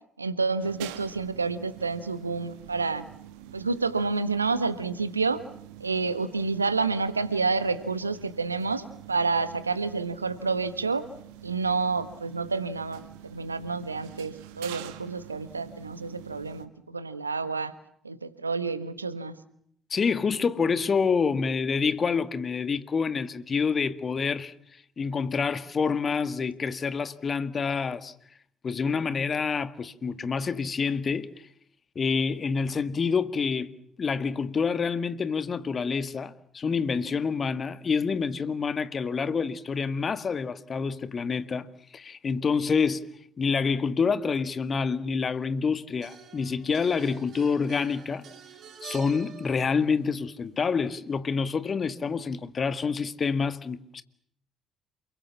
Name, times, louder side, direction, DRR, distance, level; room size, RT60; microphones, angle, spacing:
voice 1, 0.2-3.0 3.5-5.4 5.8-11.0 11.4-13.0 13.3-17.7 18.0-19.3, right 4 dB, 85° right, 1.2 m, -29 dB
sound 1, 0.6-16.7, right 12 dB, 70° right, 1.9 m, -46 dB
voice 2, 19.9-24.5 25.0-28.1 28.6-31.3 32.0-33.7 34.0-41.7 41.9-43.1 43.4-48.2 48.8-54.0, left 5 dB, 35° left, 1.9 m, -27 dB
sound 2, 45.3-45.4 46.0-50.5, right 6 dB, 50° right, 4.6 m, -47 dB
28.5 x 23.0 x 7.2 m
figure-of-eight pair, 50°, 0 cm